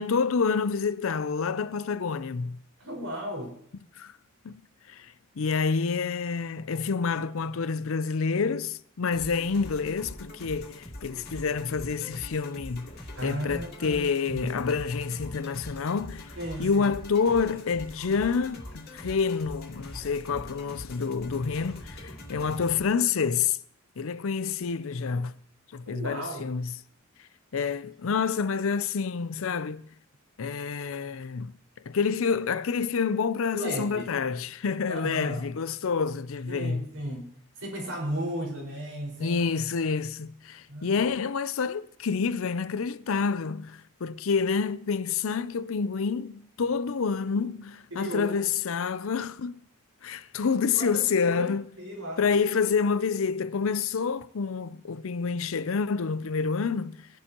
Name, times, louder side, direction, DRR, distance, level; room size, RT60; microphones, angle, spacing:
voice 1, 0.0-2.6 4.0-4.1 4.4-4.6 4.9-5.1 5.4-12.9 13.2-16.3 16.6-23.6 24.0-25.3 25.7-26.7 27.5-29.8 30.4-31.5 31.9-36.9 39.2-49.6 50.0-51.7 52.2-57.1, left 5 dB, 70° left, 0.5 m, -28 dB
voice 2, 2.8-3.5 13.1-14.7 16.4-16.9 25.8-26.5 33.5-34.1 34.9-35.4 36.5-39.4 40.7-41.0 47.2-47.3 47.9-48.4 50.3-52.2, right 1 dB, 80° right, 5.1 m, -35 dB
sound 1, 9.1-22.8, left 1 dB, 45° left, 2.5 m, -43 dB
21.5 x 11.0 x 3.0 m
head